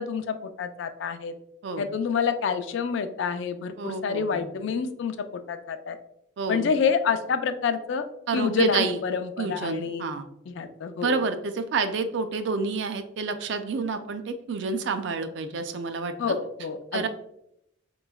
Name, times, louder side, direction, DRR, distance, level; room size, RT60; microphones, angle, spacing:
voice 1, 0.0-1.3 1.8-5.2 5.5-6.0 6.5-8.0 8.3-10.1 10.5-11.1 16.2-17.0, left 6 dB, 65° left, 9 dB, 0.3 m, -27 dB
voice 2, 3.8-4.4 6.4-6.7 8.3-9.0 9.4-10.3 11.0-16.4 16.9-17.1, right 4 dB, 60° right, 9 dB, 0.3 m, -29 dB
4.0 x 3.0 x 2.2 m, 0.78 s
head